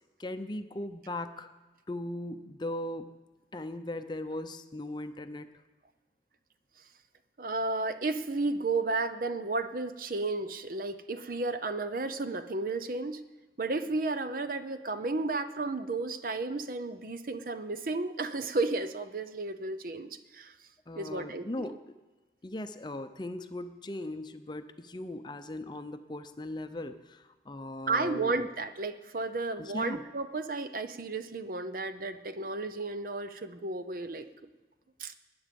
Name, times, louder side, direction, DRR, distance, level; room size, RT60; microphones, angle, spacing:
voice 1, 0.2-1.5 1.9-3.1 3.5-5.5 20.9-21.8 22.4-28.5 29.6-30.0, left 1 dB, 25° left, 9 dB, 0.6 m, -38 dB
voice 2, 7.4-13.2 13.6-20.5 20.9-21.7 27.9-34.3 35.0-35.1, right 3 dB, 50° right, 10 dB, 0.7 m, -33 dB
20.0 x 9.6 x 5.3 m, 1.2 s
head